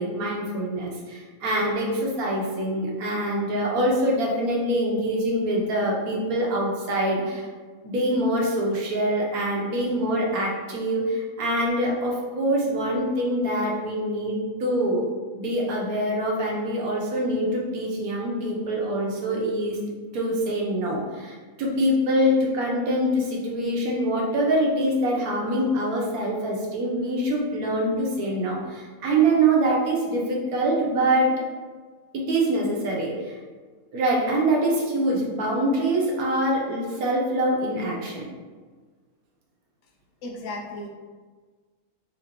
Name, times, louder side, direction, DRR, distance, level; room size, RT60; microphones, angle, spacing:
voice 1, 0.0-7.5 7.8-15.1 15.3-19.8 20.1-31.4 32.1-33.3 33.9-38.3, right 1 dB, 80° right, -2 dB, 1.3 m, -24 dB
voice 2, 40.2-40.9, left 2 dB, 65° left, 0 dB, 0.8 m, -34 dB
4.0 x 3.0 x 2.9 m, 1.4 s
omnidirectional pair, 1.5 m